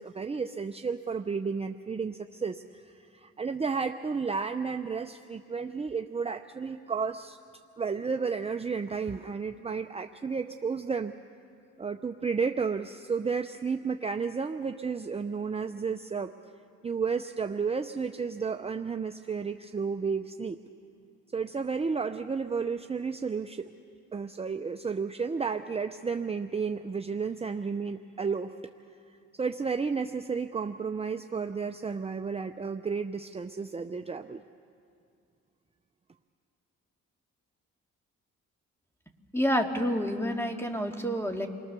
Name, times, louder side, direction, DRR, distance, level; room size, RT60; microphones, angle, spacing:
voice 1, 0.0-7.4 7.8-11.1 11.8-16.3 16.8-20.6 21.3-23.7 24.1-28.5 29.4-34.4, right 5 dB, 20° right, 7 dB, 0.7 m, -32 dB
voice 2, 39.3-41.5, equal, 10° left, 3 dB, 2.2 m, -28 dB
29.0 x 22.0 x 6.9 m, 2.4 s
cardioid pair, 90°, 30 cm